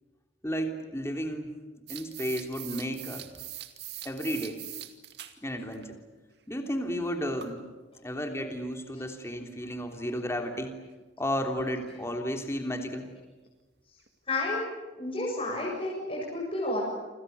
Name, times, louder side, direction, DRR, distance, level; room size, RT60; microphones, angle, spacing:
voice 1, 0.4-1.5 1.9-3.2 4.0-4.6 5.4-6.0 6.5-7.6 8.0-10.7 11.2-13.1, equal, 15° left, 4 dB, 3.2 m, -33 dB
sound 1, 1.9-5.4 5.7-5.8 7.4-7.6 8.7-8.8 11.9-12.0 12.2-12.3 12.9-13.0 13.5-13.6 14.1-14.2, right 12 dB, 60° right, 2.3 m, -42 dB
voice 2, 14.3-14.6 15.0-16.8, left 2 dB, 30° left, -4 dB, 7.8 m, -31 dB
29.0 x 26.0 x 6.9 m, 1.2 s
head